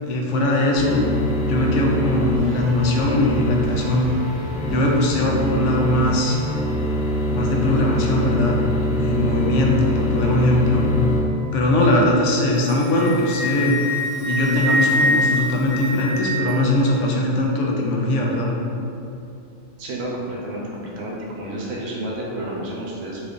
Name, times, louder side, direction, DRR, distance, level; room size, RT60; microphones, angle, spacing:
voice 1, 0.0-1.0 1.5-4.1 4.7-6.4 7.3-8.6 8.9-10.9 11.4-13.8 14.3-18.5, left 1 dB, 80° left, -1 dB, 0.9 m, -20 dB
sound 1, 0.8-11.2, left 1 dB, 25° left, 1.2 m, -24 dB
Wind instrument woodwind instrument, 12.6-16.5, left 1 dB, 55° right, 0.9 m, -24 dB
voice 2, 19.8-23.2, right 1 dB, 85° right, -4 dB, 1.0 m, -30 dB
3.0 x 2.5 x 3.6 m, 2.6 s
omnidirectional pair, 1.2 m